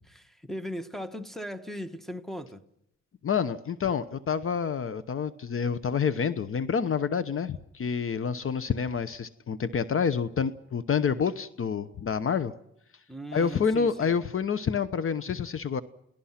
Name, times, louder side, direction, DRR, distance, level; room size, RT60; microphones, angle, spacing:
voice 1, 0.1-2.7 13.1-14.2, equal, ahead, 1.6 m, -38 dB
voice 2, 3.2-12.5 13.3-15.8, left 6 dB, 45° left, 1.0 m, -28 dB
30.0 x 18.5 x 5.9 m
cardioid pair, 90°, 30 cm